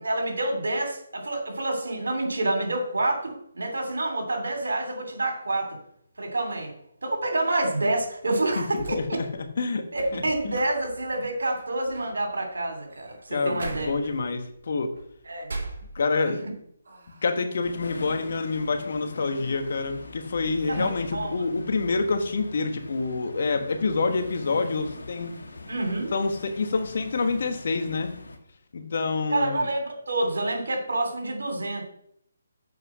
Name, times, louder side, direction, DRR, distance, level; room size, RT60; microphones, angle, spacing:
voice 1, 0.0-5.8 6.2-6.7 7.0-9.2 9.9-13.9 15.3-15.5 20.7-21.3 25.7-26.1 29.3-31.9, right 2 dB, 85° right, 3 dB, 2.9 m, -28 dB
sound 1, 8.5-16.4 16.8-17.6, right 2 dB, 70° right, 3.0 m, -42 dB
voice 2, 8.6-9.3 9.6-9.8 10.1-10.2 13.3-14.9 15.9-16.5 17.2-25.3 26.1-28.1 28.7-29.7, left 4 dB, 60° left, 7 dB, 1.3 m, -27 dB
sound 2, 17.6-28.4, left 2 dB, 85° left, 1.6 m, -42 dB
7.6 x 5.4 x 6.2 m, 0.68 s
hypercardioid pair, 155°, 0 cm